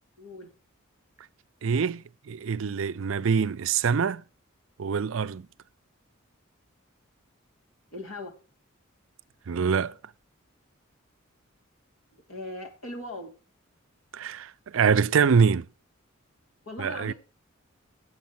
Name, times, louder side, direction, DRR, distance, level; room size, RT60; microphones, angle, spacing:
voice 1, 0.2-0.5 7.9-8.3 12.3-13.3 16.6-17.1, left 2 dB, 85° left, 3.3 m, -38 dB
voice 2, 1.6-4.2 4.8-5.5 9.5-9.9 14.1-15.7 16.8-17.1, right 6 dB, 70° right, 0.5 m, -24 dB
9.5 x 7.8 x 5.9 m
head